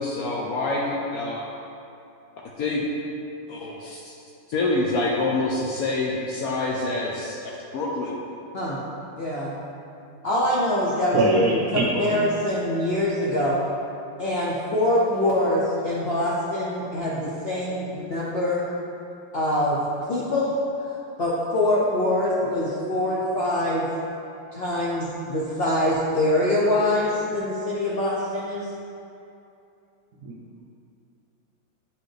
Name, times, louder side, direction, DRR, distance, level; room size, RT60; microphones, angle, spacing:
voice 1, 0.0-1.4 2.6-2.9 3.5-4.1 4.5-8.2, left 2 dB, 70° left, -2 dB, 0.9 m, -26 dB
voice 2, 9.2-9.6 10.2-13.6 14.2-18.7 19.3-19.8 20.1-23.9 24.5-28.7, left 1 dB, 85° left, -6 dB, 0.5 m, -24 dB
voice 3, 11.1-12.3 30.2-30.4, right 2 dB, 60° right, -3 dB, 1.0 m, -23 dB
8.1 x 4.1 x 3.3 m, 2.7 s
omnidirectional pair, 2.0 m